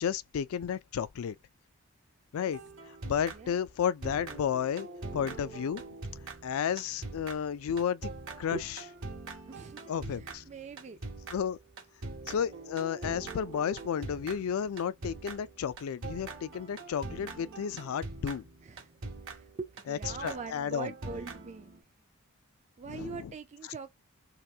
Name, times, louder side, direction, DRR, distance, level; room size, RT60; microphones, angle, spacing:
voice 1, 0.0-1.4 2.3-2.6 3.0-4.9 5.1-5.8 6.4-8.1 8.4-8.7 9.9-10.4 11.3-11.6 12.3-18.4 19.9-20.9 22.9-23.3, left 8 dB, 65° left, 0.3 m, -32 dB
sound 1, 2.5-3.7 4.0-21.8, right 3 dB, 60° right, 0.9 m, -43 dB
voice 2, 3.3-3.6 8.5-8.6 9.5-11.0 18.6-18.9 19.2-21.7 22.8-23.9, right 4 dB, 30° right, 0.4 m, -43 dB
2.9 x 2.4 x 3.3 m
head